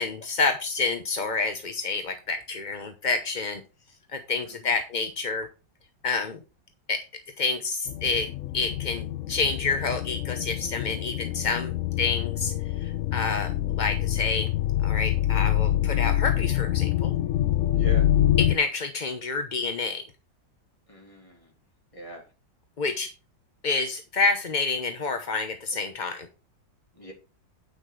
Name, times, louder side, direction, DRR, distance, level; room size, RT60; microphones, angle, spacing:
voice 1, 0.0-3.6 4.1-5.5 6.0-6.4 6.9-7.0 7.4-8.3 8.5-14.5 14.8-17.1 18.4-20.0 22.8-23.1 23.6-26.3, left 4 dB, 40° left, 6 dB, 0.6 m, -28 dB
voice 2, 4.4-4.8 17.7-18.1 20.9-21.5 21.9-22.3 26.9-27.1, right 3 dB, 15° left, 1 dB, 2.8 m, -41 dB
sound 1, 7.9-18.5, left 12 dB, 90° left, 0.7 m, -26 dB
9.3 x 5.9 x 4.7 m, 0.30 s
omnidirectional pair, 2.0 m